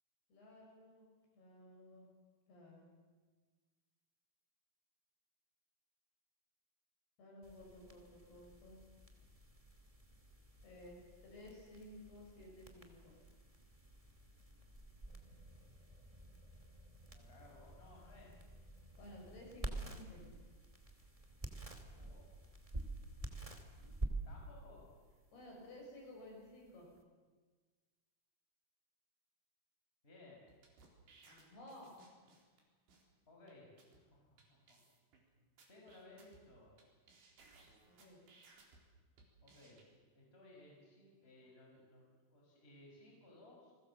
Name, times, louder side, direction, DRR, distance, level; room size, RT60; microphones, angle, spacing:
voice 1, 0.3-1.1 1.4-2.0 2.5-2.9 7.2-8.8 10.6-10.9 11.2-13.1 19.0-20.2 25.3-26.9 31.3-31.9 37.8-38.2, left 1 dB, 75° left, -1 dB, 8.9 m, -55 dB
sound 1, 7.4-27.0, right 2 dB, 20° right, 1.0 m, -49 dB
voice 2, 17.0-18.3 21.8-22.3 24.2-24.9 30.0-30.4 33.3-34.8 35.7-36.7 39.4-39.8 40.1-43.7, left 2 dB, 15° left, -2 dB, 6.1 m, -60 dB
sound 2, 30.5-32.6 32.9-33.0 33.5-33.6 33.8-34.0 34.4-34.5 34.7-35.2 35.6-36.8 37.1-38.8 39.2-39.8, right 3 dB, 85° right, 6.2 m, -64 dB
29.5 x 21.0 x 7.6 m, 1.4 s
omnidirectional pair, 4.7 m